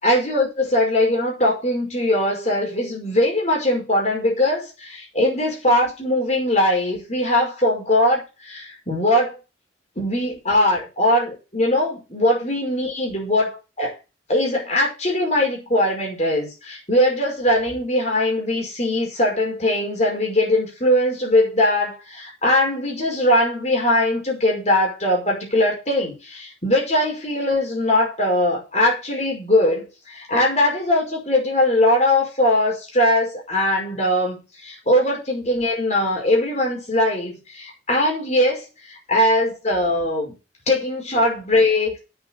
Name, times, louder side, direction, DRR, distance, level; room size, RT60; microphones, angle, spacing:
voice 1, 0.0-9.4 10.0-14.0 14.3-40.3 40.7-42.0, left 1 dB, 35° left, 5.3 m, -21 dB
8.0 x 7.4 x 6.6 m
head